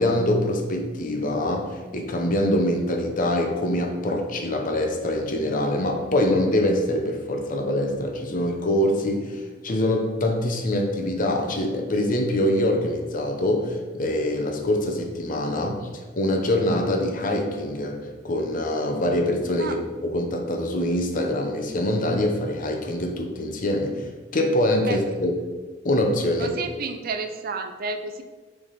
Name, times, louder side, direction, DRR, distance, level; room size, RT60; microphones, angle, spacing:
voice 1, 0.0-15.7 16.2-18.0 18.2-24.1 24.3-25.3 25.8-26.6, left 1 dB, 50° left, 3 dB, 0.8 m, -24 dB
voice 2, 26.4-28.2, right 4 dB, 55° right, 7 dB, 0.4 m, -31 dB
7.0 x 3.4 x 4.1 m, 1.3 s
head